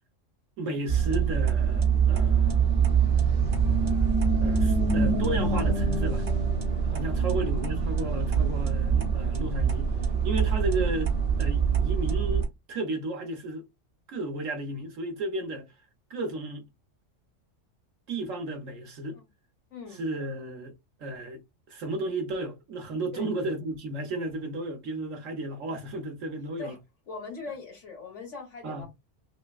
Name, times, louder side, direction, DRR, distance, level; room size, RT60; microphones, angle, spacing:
voice 1, 0.6-2.7 4.4-6.2 6.9-9.9 10.2-13.6 14.1-15.7 16.1-16.7 18.1-19.2 19.9-20.7 21.0-21.4 21.7-26.7 28.6-28.9, right 2 dB, 80° right, 1.4 m, -33 dB
sound 1, 0.9-12.4, right 6 dB, 55° right, 1.2 m, -24 dB
voice 2, 7.0-7.5 19.1-19.2 19.7-20.0 23.1-23.3 26.6-26.8 27.1-28.9, left 4 dB, 70° left, 1.7 m, -41 dB
5.7 x 2.2 x 2.4 m
omnidirectional pair, 1.3 m